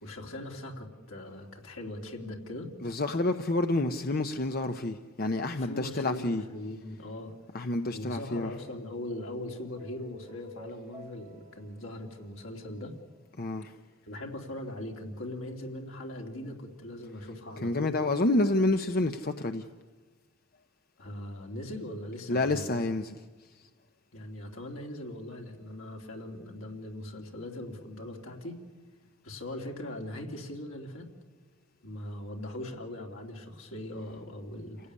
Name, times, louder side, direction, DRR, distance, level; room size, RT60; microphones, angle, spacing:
voice 1, 0.0-2.7 5.6-7.3 7.9-13.0 14.1-17.9 21.0-22.7 24.1-28.5 29.2-31.1 31.8-34.8, left 1 dB, 80° left, 3.1 m, -40 dB
voice 2, 2.8-6.5 7.5-8.5 13.4-13.7 17.6-19.7 22.3-23.2, left 2 dB, 45° left, 0.8 m, -28 dB
sound 1, 8.8-13.4, right 4 dB, 10° right, 5.6 m, -54 dB
29.0 x 16.5 x 9.8 m
head